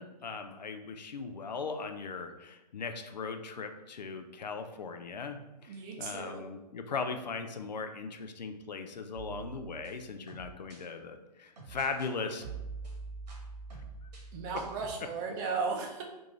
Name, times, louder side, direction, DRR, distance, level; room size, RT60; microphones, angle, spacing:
voice 1, 0.0-12.4, left 4 dB, 85° left, 7 dB, 0.5 m, -39 dB
voice 2, 5.6-6.5 14.3-16.0, right 4 dB, 30° right, 1 dB, 0.5 m, -35 dB
sound 1, 9.1-10.9 11.6-12.1 12.4-15.0, right 4 dB, 75° right, 1.1 m, -45 dB
3.5 x 2.6 x 2.9 m, 1.0 s
hypercardioid pair, 130°, 21 cm